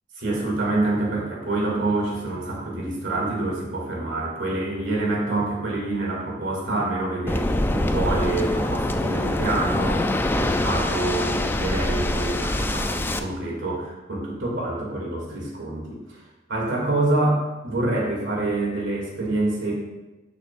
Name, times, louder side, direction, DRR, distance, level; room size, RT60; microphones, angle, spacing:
voice 1, 0.2-16.2 16.5-19.7, right 2 dB, 75° right, -3 dB, 2.5 m, -26 dB
Waves surf, 7.3-13.2, left 1 dB, 10° left, 0.4 m, -24 dB
12.0 x 6.5 x 2.5 m, 1.1 s
head